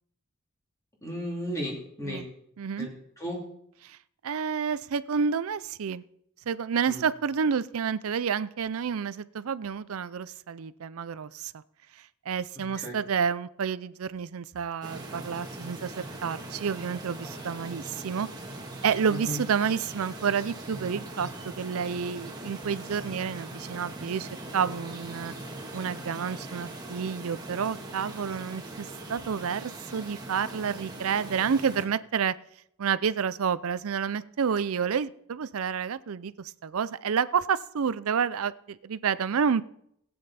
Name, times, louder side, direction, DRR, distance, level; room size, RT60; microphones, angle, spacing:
voice 1, 1.0-2.2 2.8-2.9 3.2-3.4 6.9-7.0 12.5-13.0 19.1-19.4, equal, 15° left, -3 dB, 3.0 m, -35 dB
voice 2, 2.6-2.9 3.8-4.0 4.2-6.0 6.5-11.5 12.3-18.3 18.8-24.3 24.5-25.3 25.7-32.4 32.8-39.6, right 6 dB, 75° right, 17 dB, 0.5 m, -29 dB
sound 1, 14.8-31.9, right 2 dB, 20° right, 1.6 m, -41 dB
17.0 x 8.7 x 4.2 m, 0.73 s
head